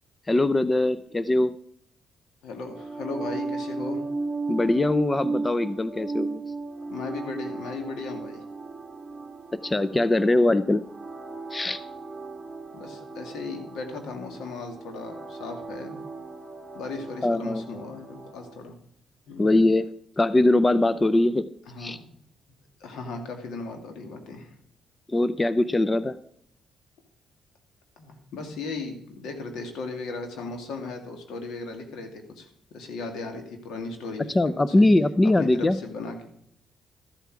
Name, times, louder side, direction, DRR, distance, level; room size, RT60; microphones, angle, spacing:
voice 1, 0.3-1.5 4.5-6.4 9.5-10.9 11.5-11.8 17.2-17.6 19.4-19.9 20.2-21.5 21.8-22.0 25.1-26.2 34.3-35.8, left 2 dB, 20° left, 15 dB, 0.5 m, -22 dB
voice 2, 2.4-4.0 6.9-8.4 12.7-16.0 16.7-18.8 19.3-19.5 21.7-22.1 22.8-24.5 28.0-32.5 32.7-34.4 34.8-34.9 35.4-36.1, left 3 dB, 80° left, 5 dB, 2.3 m, -36 dB
sound 1, 2.7-18.6, right 3 dB, 20° right, 1.9 m, -36 dB
13.5 x 8.0 x 4.8 m, 0.68 s
cardioid pair, 90°, 0 cm